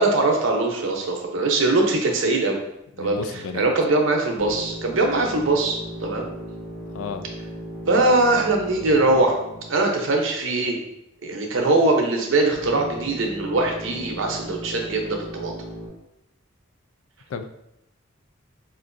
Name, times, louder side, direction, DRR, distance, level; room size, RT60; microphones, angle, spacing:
voice 1, 0.0-2.6 3.0-3.2 3.5-6.3 7.9-9.4 9.7-10.8 11.2-15.5, right 2 dB, 65° right, 1 dB, 0.7 m, -21 dB
voice 2, 3.0-3.7 6.9-7.3 17.3-17.4, left 5 dB, 75° left, 7 dB, 0.3 m, -32 dB
sound 1, 4.4-10.7 12.5-15.9, right 1 dB, 25° left, 1.2 m, -37 dB
4.4 x 2.5 x 2.5 m, 0.84 s
head